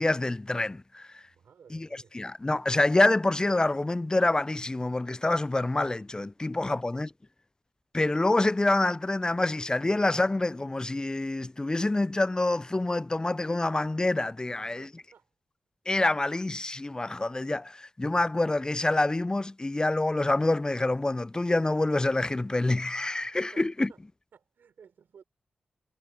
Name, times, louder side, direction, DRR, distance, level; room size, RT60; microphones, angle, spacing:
voice 1, 0.0-1.2 1.7-7.1 7.9-14.9 15.9-23.9, left 2 dB, 25° left, 0.4 m, -27 dB
voice 2, 1.3-2.2 5.2-5.3 6.4-6.9 14.8-15.3 23.2-24.0 24.3-25.2, right 7 dB, 80° right, 4.2 m, -57 dB
supercardioid pair, 40°, 3 cm